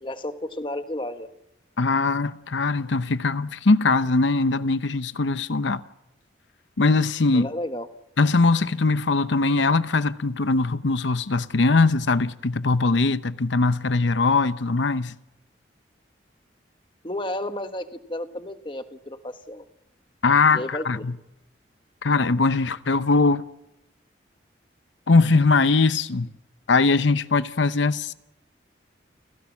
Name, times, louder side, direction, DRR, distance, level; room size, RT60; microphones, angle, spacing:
voice 1, 0.0-1.3 7.3-7.9 17.0-19.6 20.5-21.0, left 1 dB, 25° left, 1.3 m, -32 dB
voice 2, 1.8-5.8 6.8-7.5 8.2-15.1 20.2-21.1 22.0-23.4 25.1-26.3 26.7-28.1, left 3 dB, 85° left, 0.8 m, -21 dB
30.0 x 16.5 x 7.3 m
head